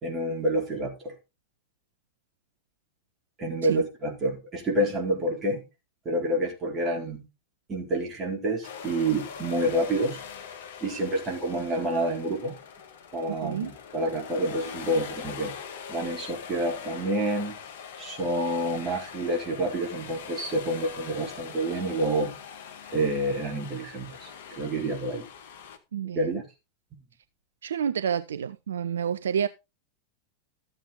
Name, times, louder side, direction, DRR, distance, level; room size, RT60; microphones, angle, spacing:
voice 1, 0.0-1.1 3.4-5.6 6.0-7.2 7.7-10.2 10.8-12.6 13.1-15.6 15.9-17.6 18.0-22.3 22.9-25.2 26.1-26.4, right 1 dB, 25° right, 4.0 m, -28 dB
sound 1, 8.6-25.8, left 7 dB, 55° left, 1.7 m, -42 dB
voice 2, 25.9-26.4 27.6-29.5, right 8 dB, 65° right, 0.5 m, -29 dB
13.5 x 7.8 x 3.7 m
figure-of-eight pair, 90°, 0 cm